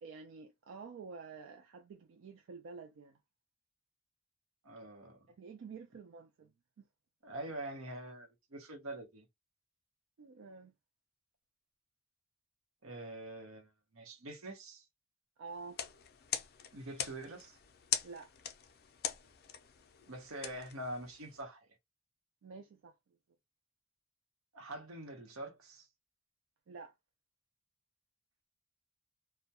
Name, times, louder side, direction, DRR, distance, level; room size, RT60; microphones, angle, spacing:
voice 1, 0.0-3.2 5.4-6.9 10.2-10.7 15.4-15.8 18.0-18.3 22.4-22.9 26.7-26.9, right 4 dB, 65° right, 0.3 m, -49 dB
voice 2, 4.6-5.2 7.2-9.3 12.8-14.9 16.7-17.6 20.1-21.7 24.5-25.9, right 1 dB, 80° right, 0.8 m, -45 dB
sound 1, 15.6-21.4, left 9 dB, 50° left, 0.4 m, -42 dB
2.2 x 2.1 x 2.7 m
head